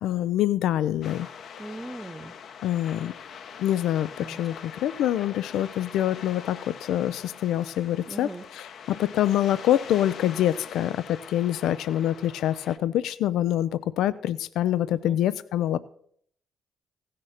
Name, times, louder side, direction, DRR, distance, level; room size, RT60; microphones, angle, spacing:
voice 1, 0.0-1.3 2.6-3.1 3.6-8.3 8.5-15.8, left 12 dB, 85° left, 15 dB, 0.4 m, -25 dB
sound 1, 1.0-12.8, left 7 dB, 65° left, 0.8 m, -43 dB
voice 2, 1.6-2.3 4.2-4.4 8.1-8.4 14.9-15.2, right 1 dB, 15° right, 10 dB, 0.7 m, -39 dB
15.5 x 6.6 x 5.7 m, 0.65 s
cardioid pair, 90°, 0 cm